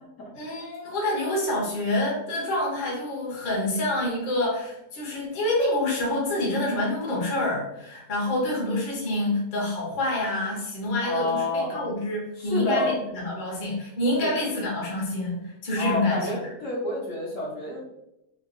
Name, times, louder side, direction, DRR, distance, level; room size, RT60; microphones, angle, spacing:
voice 1, 0.3-16.2, left 1 dB, 35° left, -4 dB, 0.9 m, -27 dB
voice 2, 11.0-11.9 12.4-13.0 14.2-14.3 15.7-17.8, left 2 dB, 55° left, -5 dB, 1.2 m, -29 dB
3.6 x 2.5 x 2.5 m, 0.87 s
omnidirectional pair, 1.7 m